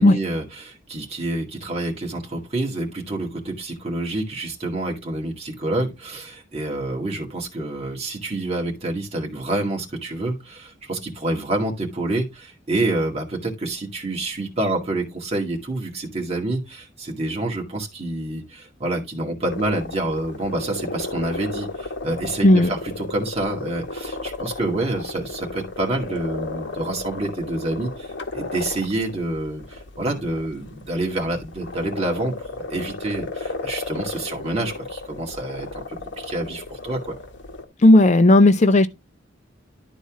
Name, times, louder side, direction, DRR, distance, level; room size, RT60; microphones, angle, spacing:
voice 1, 0.0-37.1, right 2 dB, 35° right, 2.0 m, -28 dB
sound 1, 19.5-37.6, left 3 dB, 65° left, 1.2 m, -34 dB
voice 2, 37.8-38.9, left 1 dB, 35° left, 0.5 m, -13 dB
11.5 x 4.1 x 3.7 m
head